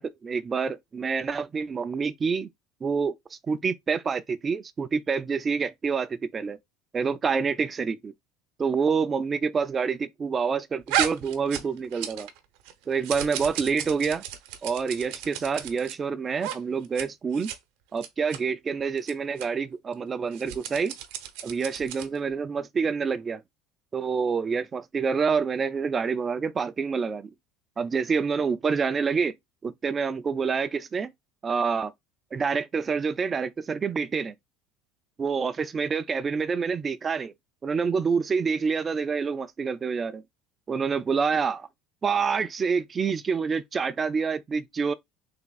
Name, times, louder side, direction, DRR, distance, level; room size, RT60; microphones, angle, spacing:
voice 1, 0.0-2.5 2.8-3.1 3.5-6.6 6.9-8.1 8.6-12.3 12.9-14.2 14.6-17.5 17.9-21.0 21.4-23.4 23.9-27.3 27.8-29.3 29.6-31.1 31.4-31.9 32.3-34.3 35.2-37.3 37.6-40.2 40.7-41.7 42.0-44.9, right 5 dB, 20° right, 0.4 m, -27 dB
sound 1, 10.9-12.4 12.6-15.9 16.4-16.6 16.8-17.0 17.3-17.6 18.0-18.4 19.0-19.1 19.4-19.5 20.3-22.2, right 11 dB, 70° right, 0.8 m, -33 dB
3.5 x 2.9 x 4.0 m
cardioid pair, 160°, 0 cm